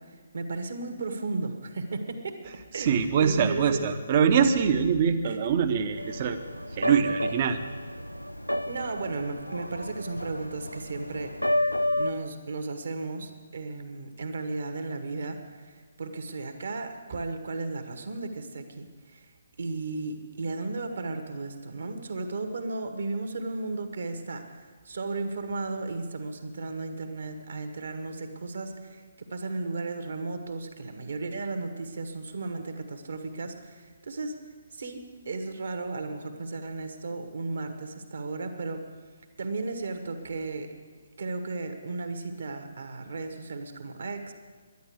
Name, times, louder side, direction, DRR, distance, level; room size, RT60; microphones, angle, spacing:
voice 1, 0.3-2.4 2.7-3.9 5.2-5.4 8.7-15.4 15.6-19.3 19.6-24.6 24.8-34.4 34.7-38.8 39.4-40.7 41.2-44.3, right 3 dB, 55° right, 6 dB, 1.7 m, -35 dB
voice 2, 2.4-6.4 6.7-7.6, right 7 dB, 35° right, 8 dB, 1.0 m, -24 dB
sound 1, 6.0-12.1, left 1 dB, 90° left, 0.5 m, -31 dB
11.5 x 10.0 x 9.6 m, 1.5 s
figure-of-eight pair, 140°, 0 cm